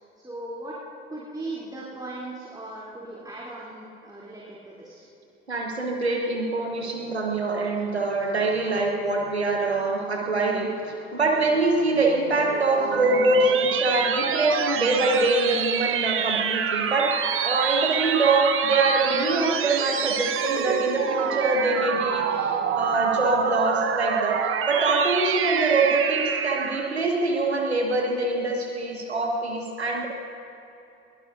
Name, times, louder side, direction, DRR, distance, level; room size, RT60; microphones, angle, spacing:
voice 1, 0.2-0.8 1.1-5.0, right 2 dB, 10° right, -6 dB, 3.1 m, -38 dB
voice 2, 5.5-17.1 17.4-24.4 24.7-30.1, right 2 dB, 85° right, 1 dB, 1.3 m, -24 dB
sound 1, 12.3-27.0, right 7 dB, 40° right, 1.1 m, -27 dB
21.5 x 19.5 x 2.6 m, 2.9 s
figure-of-eight pair, 50°, 31 cm